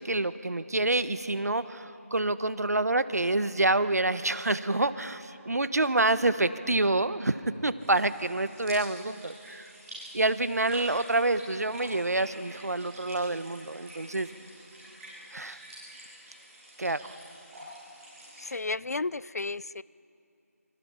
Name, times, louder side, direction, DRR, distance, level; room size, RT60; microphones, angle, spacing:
voice 1, 0.0-7.4 7.6-9.7 10.1-14.3 15.3-15.6 16.8-17.0, right 2 dB, 80° right, 13 dB, 1.2 m, -27 dB
sound 1, 7.8-18.5, right 1 dB, 5° right, 5.4 m, -48 dB
voice 2, 18.4-19.8, left 3 dB, 75° left, 21 dB, 0.5 m, -33 dB
27.0 x 25.5 x 5.8 m, 2.7 s
figure-of-eight pair, 175°, 8 cm